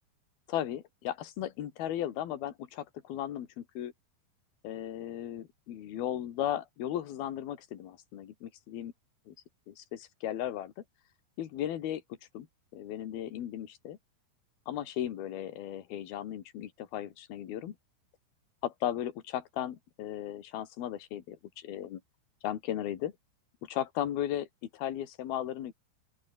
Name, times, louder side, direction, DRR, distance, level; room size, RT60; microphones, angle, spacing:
voice 1, 0.5-3.9 4.6-8.9 9.3-9.4 9.7-10.8 11.4-12.0 12.3-12.5 12.7-14.0 14.7-17.8 18.6-22.0 22.4-23.1 23.6-24.5 24.7-25.7, left 11 dB, 55° left, 3.6 m, -36 dB
open air
omnidirectional pair, 5.7 m